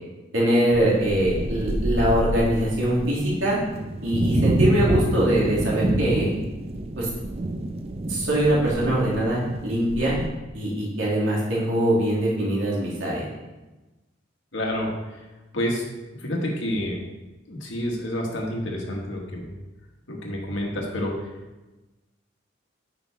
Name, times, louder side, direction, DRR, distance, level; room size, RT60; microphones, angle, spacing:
voice 1, 0.3-3.6 4.0-6.3 7.0-7.1 8.1-10.2 10.5-13.3, right 1 dB, 90° right, -5 dB, 2.6 m, -22 dB
sound 1, 0.7-10.3, right 1 dB, 30° right, 0.4 m, -27 dB
voice 2, 14.5-14.9 15.5-15.9 16.2-17.0 17.5-19.5 20.1-21.2, left 1 dB, 80° left, -1 dB, 1.7 m, -28 dB
9.0 x 5.5 x 3.5 m, 1.1 s
head